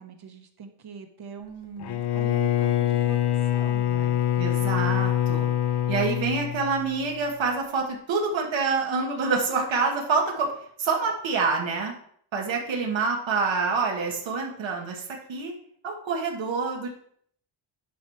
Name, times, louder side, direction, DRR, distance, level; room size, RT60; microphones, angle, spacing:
voice 1, 0.0-4.2, right 6 dB, 50° right, 5 dB, 1.2 m, -43 dB
Bowed string instrument, 1.8-7.1, left 12 dB, 55° left, 0.7 m, -25 dB
voice 2, 4.4-5.5 5.9-10.5 10.8-11.9 12.3-15.0 15.3-15.5 15.8-16.9, right 4 dB, 70° right, 0 dB, 1.7 m, -26 dB
10.0 x 4.8 x 5.8 m, 0.65 s
wide cardioid pair, 175°, 48 cm